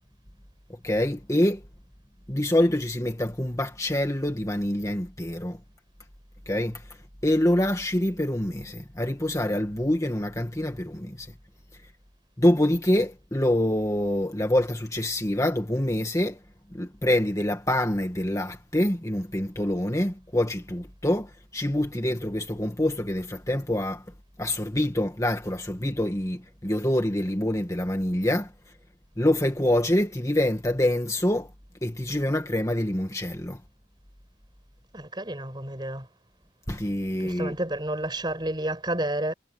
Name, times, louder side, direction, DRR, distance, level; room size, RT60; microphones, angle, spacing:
voice 1, 0.8-1.6 2.3-5.6 6.5-7.0 7.2-11.3 12.4-16.4 16.7-24.0 24.4-28.5 29.2-31.5 31.8-33.6 36.7-37.6, left 1 dB, 15° left, 1.9 m, -26 dB
voice 2, 34.9-36.1 37.2-39.3, right 1 dB, 25° right, 6.3 m, -30 dB
head